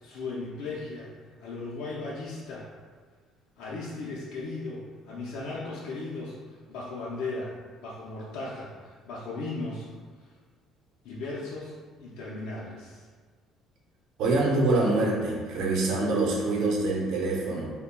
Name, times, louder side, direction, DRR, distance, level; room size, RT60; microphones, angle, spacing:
voice 1, 0.0-1.1 1.4-2.7 3.6-7.5 7.8-9.9 11.0-13.1, left 3 dB, 80° left, -6 dB, 0.5 m, -37 dB
voice 2, 14.2-17.7, right 2 dB, 70° right, -2 dB, 0.7 m, -25 dB
5.4 x 2.2 x 2.2 m, 1.5 s
cardioid pair, 150°, 0 cm